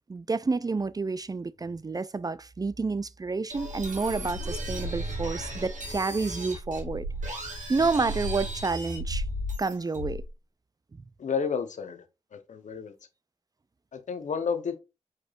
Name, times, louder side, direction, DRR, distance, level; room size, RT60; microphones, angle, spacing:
voice 1, 0.1-7.1 7.7-9.2 9.6-10.2, right 4 dB, 30° right, 0.4 m, -29 dB
sound 1, 3.5-10.3, equal, 85° right, 1.8 m, -34 dB
voice 2, 11.2-12.0 12.3-12.9 13.9-14.8, left 6 dB, 80° left, 0.8 m, -31 dB
4.8 x 4.4 x 2.4 m
cardioid pair, 50°, 13 cm